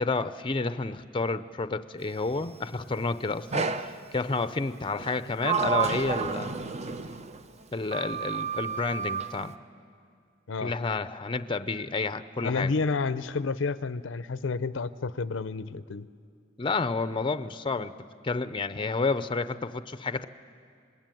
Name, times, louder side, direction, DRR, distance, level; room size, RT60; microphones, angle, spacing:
voice 1, 0.0-6.6 7.7-9.6 10.6-12.7 16.6-17.9 18.2-20.3, left 3 dB, 25° left, 12 dB, 0.6 m, -30 dB
Sliding door, 3.5-4.0 5.0-7.4 7.9-9.3, right 5 dB, 35° right, 0.7 m, -30 dB
voice 2, 12.4-16.1, left 4 dB, 75° left, 15 dB, 0.6 m, -30 dB
26.5 x 21.5 x 9.2 m, 2.3 s
head